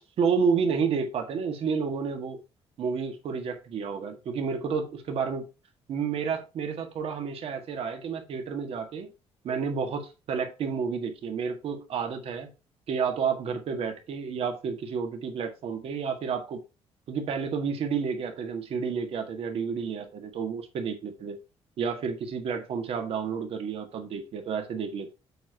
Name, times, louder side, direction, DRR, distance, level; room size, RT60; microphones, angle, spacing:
voice 1, 0.0-2.4 2.8-5.4 5.9-9.1 9.4-12.5 12.9-16.6 17.1-21.4 21.8-25.1, right 6 dB, 65° right, 1.7 m, -30 dB
7.7 x 4.6 x 4.6 m
cardioid pair, 120°, 11 cm